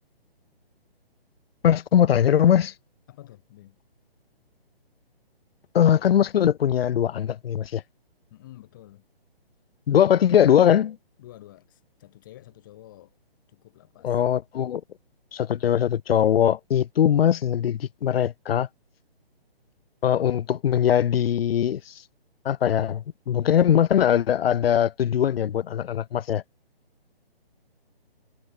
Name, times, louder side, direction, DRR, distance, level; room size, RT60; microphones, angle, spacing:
voice 1, 1.6-2.7 5.7-7.8 9.9-11.0 14.0-14.8 15.3-18.7 20.0-22.0 22.4-26.4, left 9 dB, 70° left, 0.5 m, -21 dB
voice 2, 3.1-3.8 8.3-9.0 11.2-13.2 13.5-14.2, left 15 dB, 20° left, 2.1 m, -49 dB
hypercardioid pair, 170°, 31 cm